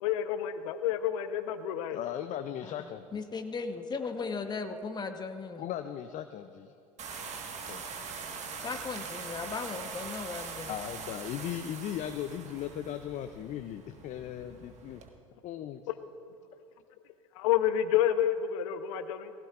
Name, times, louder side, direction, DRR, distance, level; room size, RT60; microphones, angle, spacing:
voice 1, 0.0-2.0 17.4-19.3, left 10 dB, 65° left, 11 dB, 0.9 m, -29 dB
voice 2, 1.9-3.2 5.6-6.7 7.7-7.8 10.7-15.0 15.4-15.8, left 11 dB, 45° left, 9 dB, 0.6 m, -37 dB
voice 3, 2.6-5.7 8.6-10.7, left 4 dB, 25° left, 6 dB, 1.1 m, -37 dB
sound 1, 7.0-15.1, right 5 dB, 40° right, 1.6 m, -42 dB
19.0 x 16.5 x 2.5 m, 2.4 s
hypercardioid pair, 75°, 18 cm